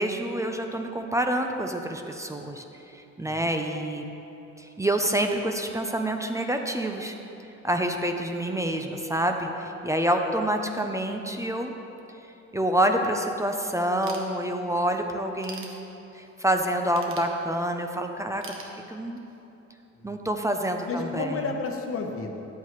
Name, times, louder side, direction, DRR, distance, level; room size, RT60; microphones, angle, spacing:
voice 1, 0.0-2.6 2.9-4.0 4.6-7.1 7.6-11.7 12.5-15.8 16.1-18.4 18.9-19.2 20.0-21.4, right 1 dB, 10° right, 4 dB, 0.6 m, -27 dB
Ratchet pawl / Tools, 14.0-14.8 15.2-16.3 16.9-17.9 18.4-19.4, right 4 dB, 45° right, 1.2 m, -44 dB
voice 2, 19.9-20.3 20.9-22.5, left 4 dB, 45° left, 3 dB, 1.1 m, -32 dB
10.5 x 8.1 x 3.1 m, 2.9 s
cardioid pair, 90°, 30 cm